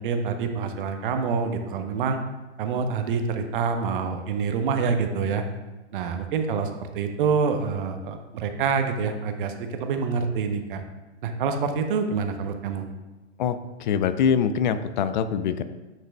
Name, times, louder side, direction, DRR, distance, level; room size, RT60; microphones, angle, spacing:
voice 1, 0.0-2.2 2.6-5.4 5.9-10.8 11.2-12.8, right 5 dB, 50° right, 6 dB, 0.8 m, -26 dB
voice 2, 13.4-15.6, left 7 dB, 45° left, 12 dB, 0.5 m, -24 dB
8.9 x 5.9 x 2.3 m, 1.1 s
figure-of-eight pair, 115°, 34 cm